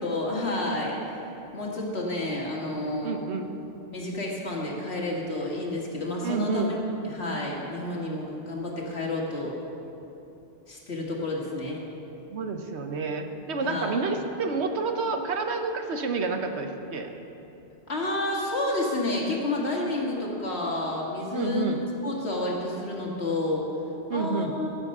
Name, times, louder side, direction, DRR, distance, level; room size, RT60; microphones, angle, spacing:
voice 1, 0.0-1.2 1.5-3.2 3.9-6.7 7.0-9.5 10.7-11.8 13.6-14.0 17.9-21.7 22.0-23.6 24.1-24.7, left 2 dB, 75° left, -3 dB, 2.2 m, -30 dB
voice 2, 3.0-3.5 6.2-6.8 12.3-17.1 21.3-21.8 24.1-24.5, right 4 dB, 80° right, 5 dB, 1.2 m, -29 dB
16.5 x 7.3 x 5.5 m, 2.9 s
omnidirectional pair, 1.1 m